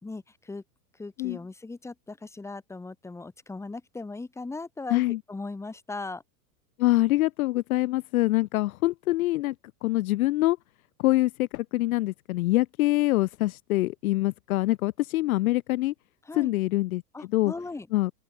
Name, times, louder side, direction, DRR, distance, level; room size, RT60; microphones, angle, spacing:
voice 1, 0.0-0.6 1.0-6.2 16.2-16.5 17.1-17.9, left 3 dB, 5° left, 2.3 m, -38 dB
voice 2, 6.8-9.5 9.8-10.6 11.0-15.9 16.3-17.0 17.3-17.5 17.9-18.1, left 18 dB, 60° left, 0.8 m, -25 dB
open air
supercardioid pair, 150°, 49 cm